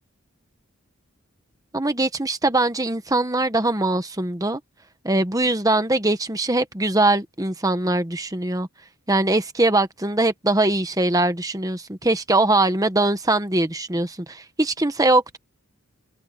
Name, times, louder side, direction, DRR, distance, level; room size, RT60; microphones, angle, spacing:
voice 1, 1.7-4.6 5.0-8.7 9.1-15.4, right 2 dB, 15° right, 1.3 m, -22 dB
head